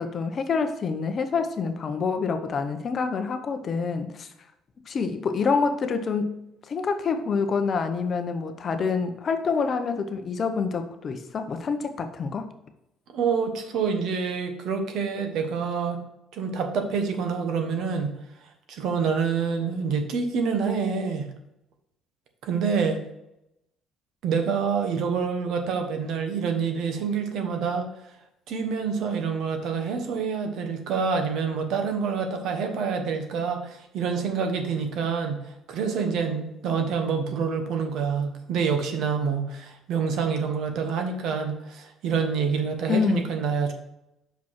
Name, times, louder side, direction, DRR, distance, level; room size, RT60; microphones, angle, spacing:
voice 1, 0.0-4.3 4.9-6.4 6.7-12.5 42.9-43.3, left 5 dB, 35° left, 8 dB, 0.6 m, -27 dB
voice 2, 13.1-16.0 16.3-18.2 18.7-21.3 22.4-23.0 24.2-27.9 28.5-43.7, right 5 dB, 60° right, 6 dB, 1.1 m, -27 dB
5.8 x 5.2 x 5.7 m, 0.88 s
cardioid pair, 155°, 0 cm